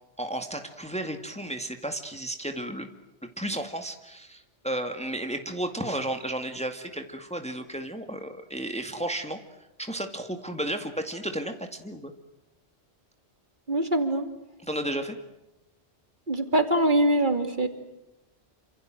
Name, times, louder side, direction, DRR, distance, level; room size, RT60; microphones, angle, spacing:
voice 1, 0.2-2.9 3.4-9.4 9.8-12.1 14.6-15.2, right 1 dB, 5° left, 6 dB, 2.2 m, -33 dB
voice 2, 13.7-14.3 16.3-17.7, right 1 dB, 45° right, 7 dB, 3.0 m, -23 dB
28.5 x 26.5 x 7.7 m, 0.91 s
omnidirectional pair, 1.1 m